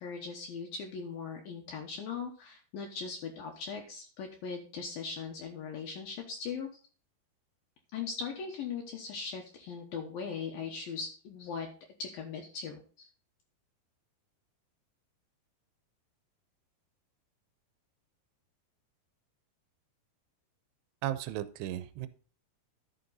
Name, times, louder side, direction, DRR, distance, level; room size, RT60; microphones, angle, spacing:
voice 1, 0.0-6.7 7.9-11.7 12.0-13.1, left 5 dB, 70° left, 2 dB, 2.6 m, -39 dB
voice 2, 21.0-22.1, right 13 dB, 85° right, 13 dB, 2.8 m, -35 dB
11.5 x 6.7 x 4.0 m, 0.39 s
omnidirectional pair, 4.9 m